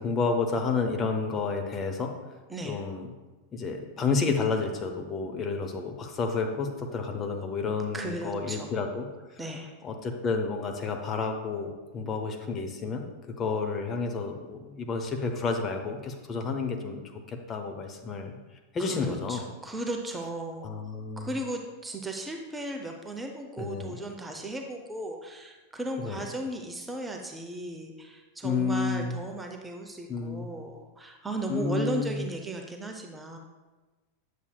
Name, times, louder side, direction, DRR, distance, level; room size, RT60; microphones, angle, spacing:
voice 1, 0.0-2.1 2.6-3.1 3.5-9.1 9.3-9.4 9.8-17.0 17.3-18.4 18.7-19.5 20.6-21.3 23.6-24.0 26.0-26.3 28.4-29.2 30.1-30.5 31.5-32.2, left 4 dB, 25° left, 3 dB, 0.7 m, -30 dB
voice 2, 7.9-8.7 9.4-9.7 18.9-20.7 21.2-33.4, right 2 dB, 10° right, 2 dB, 0.6 m, -36 dB
8.1 x 7.1 x 2.3 m, 1.2 s
figure-of-eight pair, 90°, 0 cm